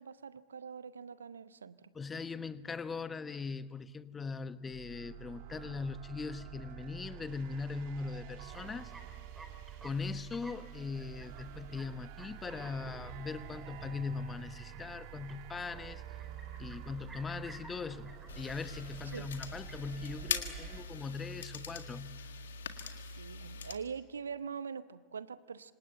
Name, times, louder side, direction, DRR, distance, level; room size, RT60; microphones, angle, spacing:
voice 1, 0.0-1.9 19.1-19.3 23.1-25.7, right 6 dB, 75° right, 17 dB, 0.7 m, -43 dB
voice 2, 1.9-8.9 9.8-16.0 16.6-22.2, left 4 dB, 20° left, 13 dB, 1.1 m, -40 dB
sound 1, 4.7-20.8, right 11 dB, 55° right, 1.9 m, -48 dB
sound 2, 8.5-20.0, right 2 dB, 10° right, 3.7 m, -56 dB
sound 3, 18.3-23.7, left 6 dB, 70° left, 1.7 m, -42 dB
26.5 x 26.0 x 7.9 m, 1.4 s
figure-of-eight pair, 80°, 0 cm